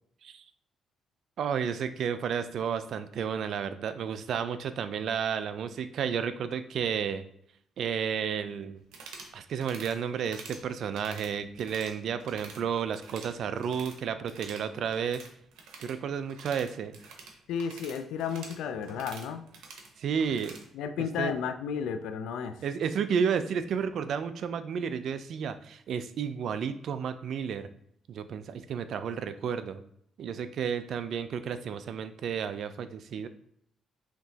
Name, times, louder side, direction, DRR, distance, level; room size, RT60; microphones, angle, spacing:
voice 1, 1.4-7.2 7.8-8.8 9.3-15.3 15.8-16.9 18.9-19.0 20.0-20.6 21.2-21.3 22.6-27.7 28.1-29.8 30.2-33.3, right 7 dB, 65° right, 11 dB, 0.3 m, -32 dB
sound 1, 8.8-9.3 9.6-9.9 10.2-10.6 10.9-11.9 12.2-12.6 12.9-14.0 14.2-20.6, right 4 dB, 90° right, 0.9 m, -47 dB
voice 2, 17.5-19.4 20.3-20.4 20.7-22.6, left 7 dB, 90° left, 10 dB, 0.3 m, -33 dB
5.7 x 2.9 x 2.8 m, 0.70 s
cardioid pair, 90°, 0 cm